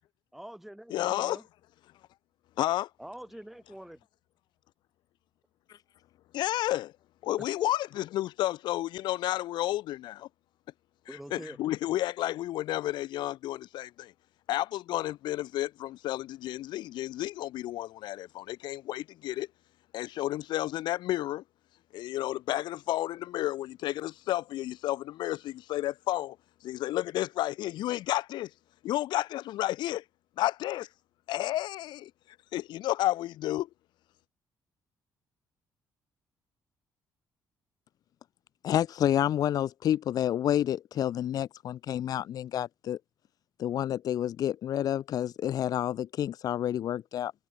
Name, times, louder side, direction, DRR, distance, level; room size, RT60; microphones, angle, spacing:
voice 1, 0.3-1.4 3.0-4.0 7.4-7.7 11.1-11.6, right 1 dB, 5° right, 3.2 m, -45 dB
voice 2, 0.9-1.4 2.6-2.9 6.3-6.9 7.2-10.3 11.3-14.1 14.5-19.5 19.9-21.4 21.9-26.4 26.6-28.5 28.8-30.0 30.4-30.9 31.3-32.1 32.5-33.7, left 14 dB, 80° left, 0.7 m, -31 dB
voice 3, 38.6-43.0 43.6-47.3, left 11 dB, 55° left, 1.6 m, -29 dB
cardioid pair, 160°, 8 cm